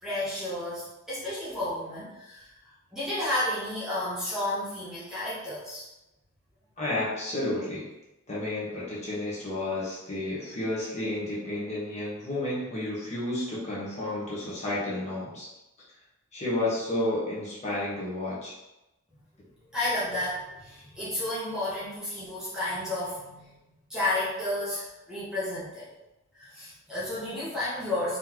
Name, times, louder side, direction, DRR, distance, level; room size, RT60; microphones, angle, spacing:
voice 1, 0.0-5.8 19.7-23.5 23.9-25.9 26.3-28.2, left 1 dB, 5° right, -10 dB, 1.1 m, -32 dB
voice 2, 6.8-7.8 8.3-15.5 16.3-18.5, left 1 dB, 35° left, -7 dB, 1.2 m, -31 dB
3.9 x 3.1 x 3.0 m, 0.95 s
head